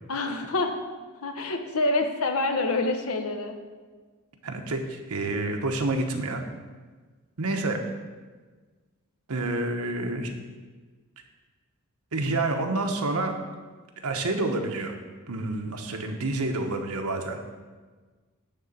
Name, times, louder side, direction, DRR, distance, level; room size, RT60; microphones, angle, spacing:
voice 1, 0.1-0.7 1.2-3.6, left 2 dB, 80° left, 5 dB, 1.0 m, -26 dB
voice 2, 4.4-6.4 7.4-7.8 9.3-10.3 12.1-13.3 14.0-14.9 15.3-17.4, right 2 dB, 80° right, 4 dB, 1.1 m, -28 dB
10.5 x 3.9 x 7.3 m, 1.4 s
head